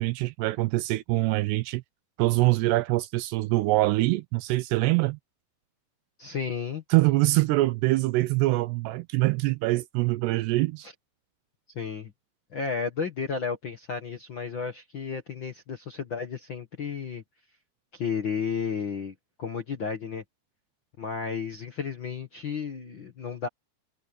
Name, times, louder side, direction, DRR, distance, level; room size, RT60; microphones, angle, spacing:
voice 1, 0.0-1.8 2.2-5.2 6.9-10.9, right 20 dB, 80° right, 2.7 m, -24 dB
voice 2, 6.2-6.8 10.8-10.9 11.7-12.1 12.5-17.2 17.9-20.2 21.0-23.5, left 6 dB, 70° left, 1.1 m, -33 dB
omnidirectional pair, 4.9 m